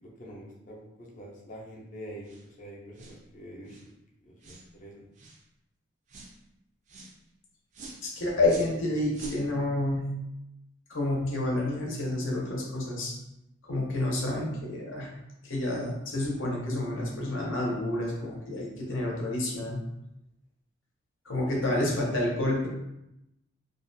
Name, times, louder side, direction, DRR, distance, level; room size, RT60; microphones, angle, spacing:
voice 1, 0.0-3.8 4.2-5.1 21.5-21.8, equal, 40° left, -2 dB, 0.5 m, -45 dB
sound 1, 2.2-2.5 2.9-3.2 3.7-3.9 4.4-4.7 5.1-5.4 6.1-6.3 6.9-7.1 7.7-8.0 8.4-8.8 9.1-9.4, right 3 dB, 35° right, 0.3 m, -44 dB
voice 2, 8.0-10.1 10.9-13.1 13.7-15.1 15.4-19.8 21.2-22.7, left 1 dB, 75° left, -2 dB, 0.7 m, -29 dB
2.4 x 2.2 x 2.6 m, 0.87 s
head